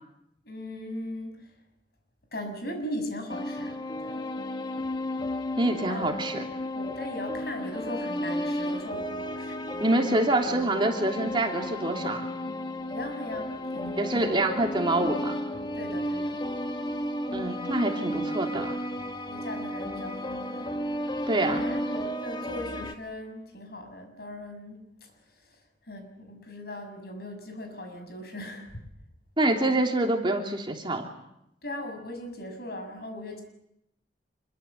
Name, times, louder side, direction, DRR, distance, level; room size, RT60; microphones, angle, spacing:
voice 1, 0.4-1.5 2.3-4.2 5.8-6.2 6.7-9.7 12.9-14.1 14.5-14.7 15.7-16.4 18.9-19.0 19.3-20.7 21.3-25.1 25.4-25.6 25.9-28.7 31.6-33.4, left 1 dB, 60° left, 5 dB, 7.0 m, -39 dB
sound 1, 3.3-22.9, left 1 dB, 25° left, 1.8 m, -33 dB
voice 2, 5.6-6.4 9.8-12.3 14.0-15.4 17.3-18.8 21.3-21.6 29.4-31.0, right 2 dB, 25° right, 3 dB, 3.1 m, -26 dB
27.0 x 23.5 x 8.5 m, 0.80 s
head